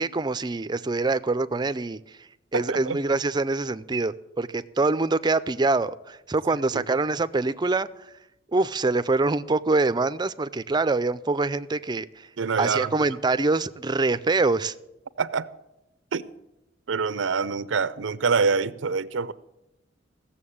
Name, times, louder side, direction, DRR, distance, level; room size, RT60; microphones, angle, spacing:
voice 1, 0.0-2.0 2.5-7.9 8.5-12.3 12.6-14.7, right 3 dB, 25° right, 0.5 m, -25 dB
voice 2, 2.5-3.0 6.7-6.8 12.4-13.2 15.2-15.5 16.1-16.2 16.9-19.3, right 5 dB, 85° right, 0.6 m, -26 dB
16.0 x 7.2 x 8.6 m
head